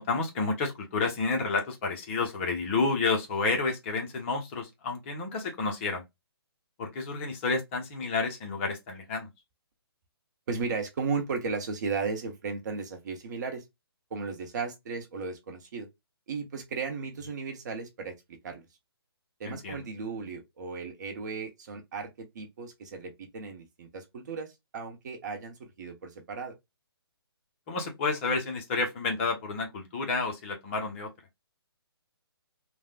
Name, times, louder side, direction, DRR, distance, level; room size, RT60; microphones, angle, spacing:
voice 1, 0.0-6.0 6.8-9.3 19.4-19.8 27.7-31.1, left 4 dB, 30° left, 0.8 m, -30 dB
voice 2, 10.5-13.6 14.1-15.9 16.3-18.2 18.4-18.7 19.4-26.5, right 5 dB, 45° right, 0.8 m, -35 dB
3.3 x 2.2 x 2.3 m
figure-of-eight pair, 135°, 14 cm